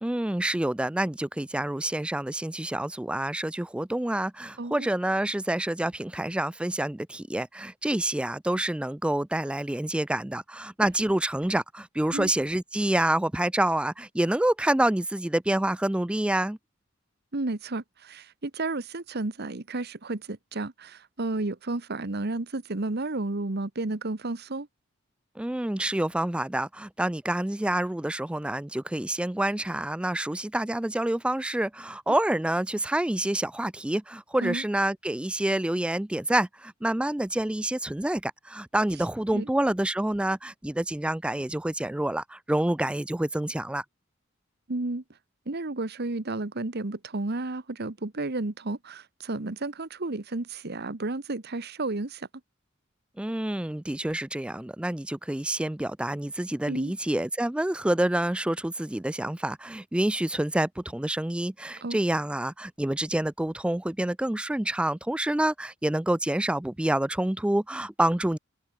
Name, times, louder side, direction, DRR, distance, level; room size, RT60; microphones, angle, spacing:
voice 1, 0.0-16.6 25.4-43.8 53.2-68.4, right 1 dB, 5° right, 0.3 m, -27 dB
voice 2, 4.6-4.9 12.1-12.3 17.3-24.7 32.1-32.2 34.4-34.6 39.3-39.5 44.7-45.0 45.5-52.3 56.7-56.9 61.8-62.0, right 2 dB, 55° right, 1.2 m, -32 dB
head